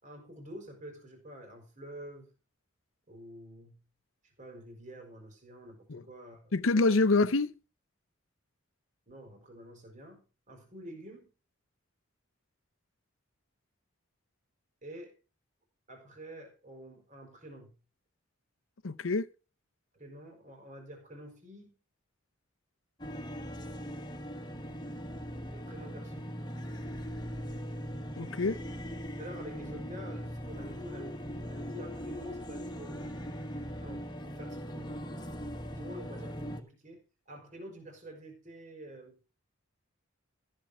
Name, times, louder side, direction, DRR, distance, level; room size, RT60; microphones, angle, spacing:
voice 1, 0.0-2.3 3.1-3.8 4.2-6.5 9.1-11.3 14.8-15.2 15.9-17.7 19.9-21.7 25.5-26.3 29.2-33.0 33.4-34.9 35.7-39.2, right 1 dB, 35° right, 4.4 m, -48 dB
voice 2, 6.5-7.5 18.8-19.3 28.2-28.6, left 3 dB, 70° left, 0.8 m, -26 dB
sound 1, 23.0-36.6, equal, 20° left, 1.5 m, -40 dB
14.5 x 7.7 x 4.9 m
head